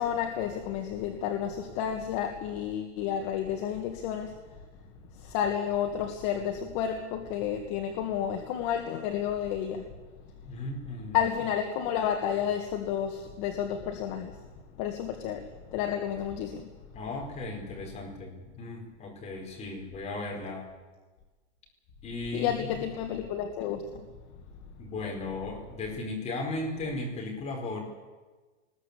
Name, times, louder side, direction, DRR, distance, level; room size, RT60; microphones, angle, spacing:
voice 1, 0.0-4.4 5.1-9.9 11.1-14.4 14.7-16.7 22.3-24.1, left 9 dB, 40° left, 4 dB, 1.9 m, -31 dB
voice 2, 10.4-11.3 16.9-20.7 22.0-22.5 24.8-27.8, left 2 dB, 20° left, 0 dB, 4.8 m, -36 dB
21.0 x 20.5 x 8.4 m, 1.3 s
supercardioid pair, 170°, 36 cm